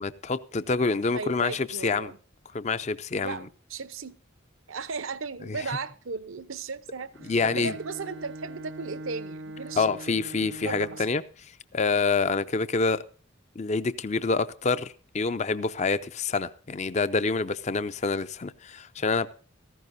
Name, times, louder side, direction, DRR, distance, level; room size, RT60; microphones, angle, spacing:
voice 1, 0.0-2.1 2.5-3.5 5.5-5.7 7.2-7.7 9.8-13.0 13.6-19.3, left 4 dB, 35° left, 13 dB, 0.5 m, -27 dB
voice 2, 1.1-2.2 3.2-4.1 4.7-7.1 7.4-10.2 10.6-11.1, right 4 dB, 75° right, 15 dB, 0.9 m, -36 dB
Bowed string instrument, 7.1-11.3, right 1 dB, 55° right, 0.5 m, -42 dB
17.0 x 14.5 x 2.7 m, 0.41 s
head